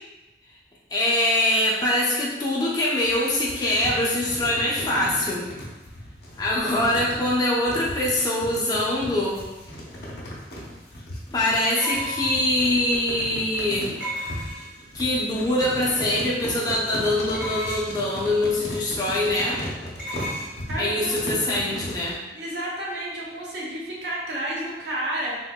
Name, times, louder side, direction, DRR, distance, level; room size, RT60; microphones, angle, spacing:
voice 1, 0.9-5.5 6.4-9.4 11.3-13.9 14.9-19.6 20.8-22.2, left 1 dB, 20° left, -5 dB, 0.6 m, -23 dB
sound 1, 3.0-22.1, equal, 60° left, 0.7 m, -37 dB
sound 2, 10.2-10.3 11.8-12.6 14.0-14.9 17.3-18.1 20.0-20.5, equal, 45° right, 1.0 m, -33 dB
voice 2, 20.7-21.4 22.3-25.4, right 1 dB, 70° right, -5 dB, 0.7 m, -31 dB
3.6 x 2.5 x 2.2 m, 1.1 s
head